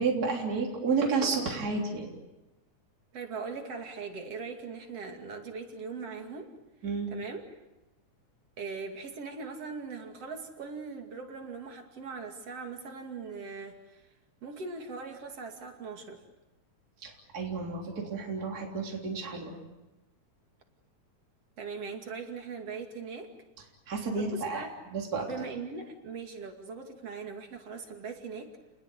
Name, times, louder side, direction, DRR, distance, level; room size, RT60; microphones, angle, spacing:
voice 1, 0.0-2.1 6.8-7.1 17.0-19.6 23.9-25.3, right 4 dB, 30° right, 0 dB, 3.8 m, -31 dB
voice 2, 3.1-6.5 7.1-7.4 8.6-14.0 14.4-16.2 21.6-23.3 23.9-24.7 25.2-28.5, right 4 dB, 55° right, 4 dB, 3.4 m, -40 dB
30.0 x 20.0 x 8.3 m, 1.0 s
omnidirectional pair, 3.5 m